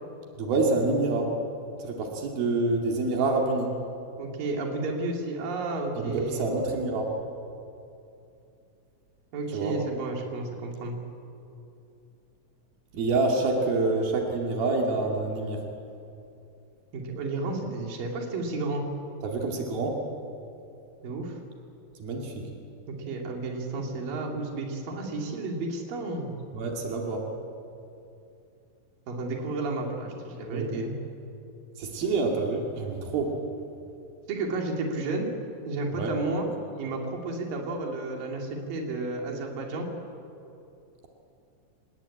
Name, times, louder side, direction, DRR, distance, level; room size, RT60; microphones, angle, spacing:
voice 1, 0.4-1.4 1.8-3.7 6.0-7.1 9.5-9.7 12.9-15.6 19.2-20.0 22.0-22.5 26.5-27.3 30.4-30.9 31.8-33.4 35.9-36.2, right 3 dB, 90° right, 1 dB, 4.3 m, -27 dB
voice 2, 4.2-6.5 9.3-11.0 16.9-18.8 21.0-21.4 22.9-26.3 29.1-31.0 34.3-35.3 35.7-36.5 36.8-39.9, right 2 dB, 70° right, 1 dB, 4.4 m, -32 dB
27.5 x 20.0 x 8.7 m, 2.7 s
omnidirectional pair, 4.1 m